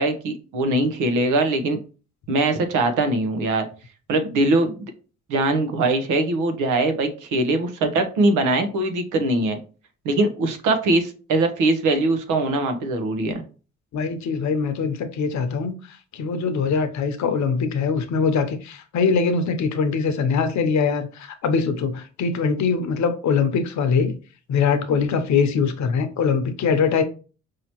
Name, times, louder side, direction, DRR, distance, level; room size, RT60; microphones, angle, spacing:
voice 1, 0.0-1.8 2.3-3.6 4.1-4.9 5.3-9.6 10.0-13.4, right 2 dB, 90° right, 0.9 m, -22 dB
voice 2, 13.9-15.8 16.1-24.2 24.5-27.0, left 5 dB, 65° left, 0.8 m, -22 dB
4.8 x 2.8 x 2.9 m
cardioid pair, 90°, 30 cm